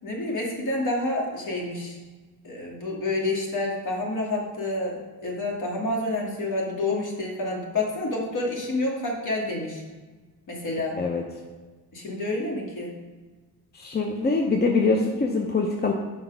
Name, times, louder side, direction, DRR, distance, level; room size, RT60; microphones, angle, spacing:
voice 1, 0.0-2.0 2.4-9.8 10.5-10.9 11.9-12.9, left 2 dB, 50° left, -2 dB, 2.2 m, -28 dB
voice 2, 13.8-15.9, left 3 dB, 25° left, 1 dB, 0.7 m, -23 dB
5.7 x 5.4 x 5.4 m, 1.3 s
supercardioid pair, 80°, 41 cm